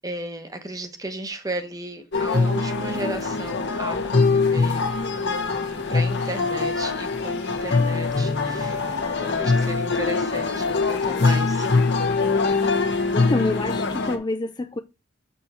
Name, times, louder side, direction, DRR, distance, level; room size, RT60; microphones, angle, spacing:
voice 1, 0.0-4.9 5.2-11.7, right 1 dB, 15° right, 1.0 m, -35 dB
sound 1, 2.1-14.2, left 4 dB, 55° left, 1.3 m, -23 dB
voice 2, 9.2-9.7 13.1-14.8, left 2 dB, 20° left, 0.4 m, -28 dB
7.8 x 4.5 x 4.3 m
head